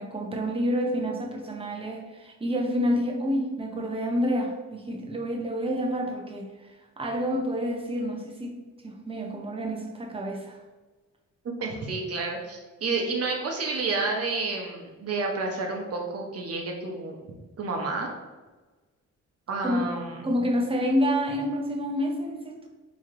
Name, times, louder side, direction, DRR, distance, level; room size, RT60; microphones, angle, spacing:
voice 1, 0.0-6.7 7.0-8.6 8.8-10.6 19.6-19.9 20.2-22.7, equal, 20° right, 1 dB, 0.7 m, -28 dB
voice 2, 11.4-17.3 17.6-18.1 19.5-20.2, right 3 dB, 50° right, 1 dB, 0.9 m, -30 dB
3.1 x 3.0 x 3.7 m, 1.2 s
cardioid pair, 105°, 30 cm